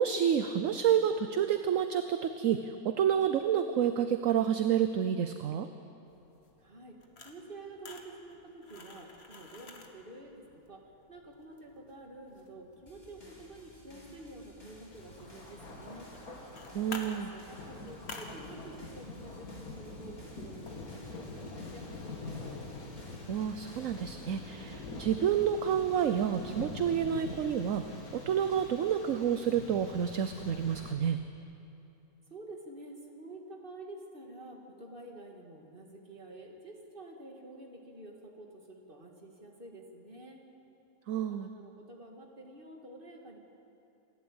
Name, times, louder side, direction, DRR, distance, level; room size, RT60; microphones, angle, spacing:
voice 1, 0.0-5.7 16.7-17.3 23.3-31.2 41.1-41.5, right 8 dB, 65° right, 9 dB, 1.1 m, -29 dB
sound 1, 6.1-22.6, left 3 dB, 45° left, 1.8 m, -52 dB
voice 2, 6.6-16.1 17.0-22.6 32.3-40.4 41.3-43.4, right 2 dB, 35° right, 1 dB, 2.4 m, -49 dB
sound 2, 12.9-24.0, left 1 dB, 30° left, 3.9 m, -57 dB
Thunder, 14.9-30.9, left 3 dB, 85° left, 2.7 m, -45 dB
27.5 x 11.5 x 8.8 m, 2.8 s
omnidirectional pair, 1.5 m